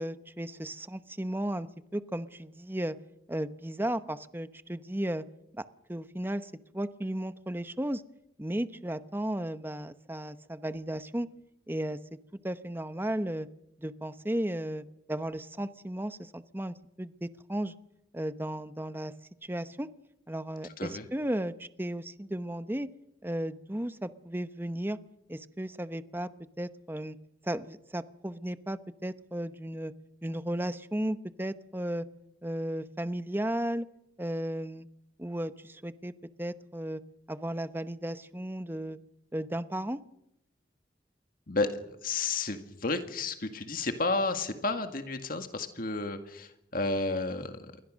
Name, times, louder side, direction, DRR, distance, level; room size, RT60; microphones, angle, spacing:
voice 1, 0.0-3.0 3.3-5.2 5.9-8.0 8.4-11.3 11.7-12.2 12.4-13.5 13.8-17.7 18.1-19.1 19.4-19.9 20.3-22.9 23.2-25.0 25.3-26.3 26.6-27.2 27.4-29.9 30.2-32.1 32.4-33.9 34.2-34.9 35.2-36.1 36.4-37.0 37.3-39.0 39.3-40.0, right 1 dB, 10° right, 12 dB, 0.9 m, -34 dB
voice 2, 41.5-47.7, left 3 dB, 55° left, 7 dB, 1.9 m, -32 dB
28.5 x 22.5 x 6.4 m, 0.81 s
head